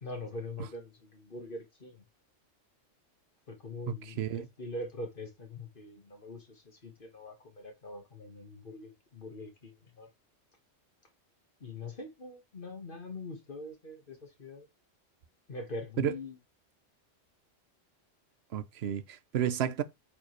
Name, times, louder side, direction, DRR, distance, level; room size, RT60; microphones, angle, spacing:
voice 1, 0.0-2.0 3.5-10.1 11.6-14.7 15.5-16.4, left 2 dB, 45° left, 1.6 m, -43 dB
voice 2, 4.1-4.5 16.0-16.1 18.5-19.8, right 9 dB, 65° right, 0.9 m, -31 dB
8.7 x 4.9 x 3.2 m
omnidirectional pair, 1.2 m